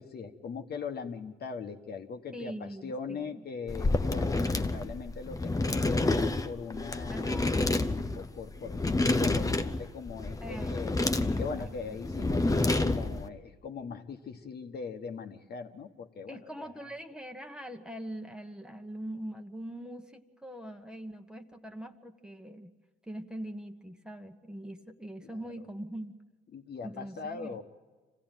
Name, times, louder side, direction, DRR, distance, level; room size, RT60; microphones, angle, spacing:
voice 1, 0.0-10.9 11.4-16.8 25.2-25.7 26.5-27.6, left 5 dB, 55° left, 5 dB, 1.3 m, -40 dB
voice 2, 2.3-3.4 7.1-7.6 10.4-10.9 11.2-12.0 16.3-22.7 23.1-26.2 26.8-27.5, right 1 dB, 5° right, 5 dB, 1.2 m, -42 dB
sound 1, 3.7-13.3, left 2 dB, 15° left, 0.8 m, -29 dB
26.0 x 15.5 x 9.1 m, 1.4 s
cardioid pair, 90°, 20 cm